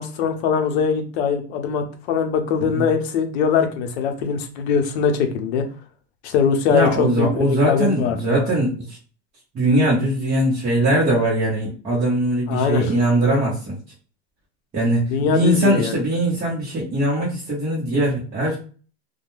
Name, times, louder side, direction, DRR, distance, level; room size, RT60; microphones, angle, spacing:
voice 1, 0.0-5.6 6.2-8.6 12.5-12.9 15.1-16.0, left 6 dB, 75° left, 5 dB, 0.7 m, -22 dB
voice 2, 6.7-9.0 9.5-13.8 14.7-18.6, right 1 dB, 20° right, -7 dB, 0.9 m, -21 dB
2.3 x 2.2 x 3.1 m, 0.37 s
supercardioid pair, 145°, 33 cm